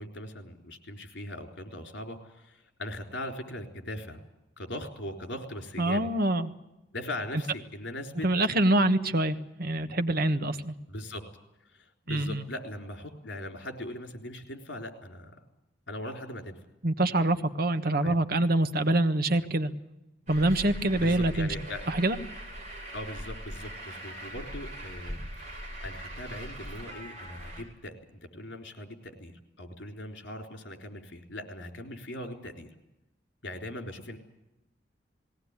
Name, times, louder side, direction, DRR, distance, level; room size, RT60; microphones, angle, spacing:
voice 1, 0.0-4.2 4.6-6.1 6.9-8.3 10.9-11.3 11.7-15.4 15.9-16.6 18.0-18.2 21.0-21.8 22.9-29.3 29.6-32.7 33.4-34.2, left 1 dB, 70° left, 5 dB, 3.9 m, -40 dB
voice 2, 5.8-6.5 8.2-10.7 12.1-12.4 16.8-19.7 20.3-21.5 21.9-22.2, right 1 dB, 55° right, 10 dB, 1.3 m, -25 dB
Truck, 20.3-27.6, equal, 40° right, 6.4 m, -41 dB
20.0 x 17.5 x 9.7 m, 0.95 s
head